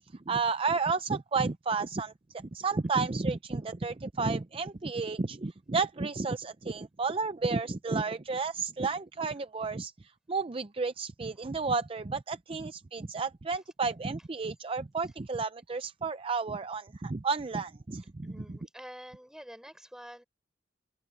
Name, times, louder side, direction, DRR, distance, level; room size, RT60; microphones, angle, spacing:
voice 1, 0.0-18.6, right 4 dB, 30° right, 0.5 m, -32 dB
voice 2, 18.2-20.2, equal, 5° right, 4.2 m, -47 dB
open air
head